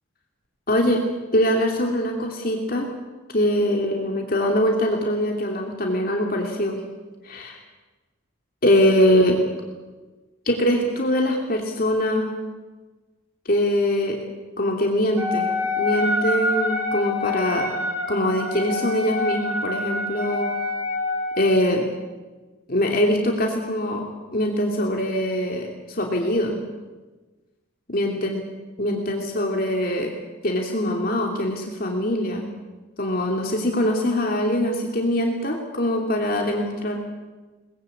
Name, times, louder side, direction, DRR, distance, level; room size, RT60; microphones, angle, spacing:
voice 1, 0.7-1.0 1.3-2.9 3.3-6.8 7.2-7.5 8.6-9.4 10.4-12.3 13.4-14.2 14.6-17.7 18.1-20.5 21.4-21.9 22.7-24.1 24.3-26.6 27.9-28.4 28.8-30.1 30.4-32.5 33.0-37.0, left 1 dB, 45° left, 1 dB, 2.9 m, -23 dB
Wind instrument woodwind instrument, 15.2-21.6, left 2 dB, 10° right, 5.8 m, -26 dB
23.0 x 20.5 x 8.6 m, 1.2 s
head